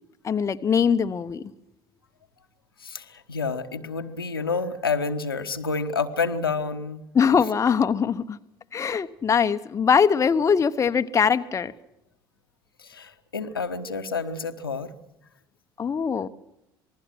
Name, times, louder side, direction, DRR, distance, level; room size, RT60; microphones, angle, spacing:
voice 1, 0.2-1.4 7.1-8.4 8.7-11.7 15.8-16.3, left 6 dB, 25° left, 8 dB, 1.0 m, -22 dB
voice 2, 2.8-7.0 7.4-7.5 12.8-14.9, left 4 dB, 80° left, 7 dB, 1.2 m, -29 dB
27.0 x 20.5 x 6.3 m, 0.84 s
figure-of-eight pair, 60°, 12 cm